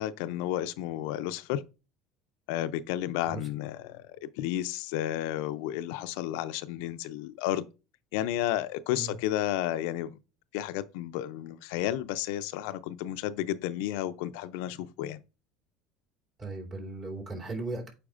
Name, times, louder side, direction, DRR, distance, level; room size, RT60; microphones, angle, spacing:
voice 1, 0.0-1.6 2.5-7.6 8.1-10.2 10.5-15.2, left 13 dB, 75° left, 0.4 m, -32 dB
voice 2, 16.4-17.9, right 3 dB, 40° right, 2.9 m, -37 dB
8.5 x 4.6 x 2.5 m
hypercardioid pair, 80°, 0 cm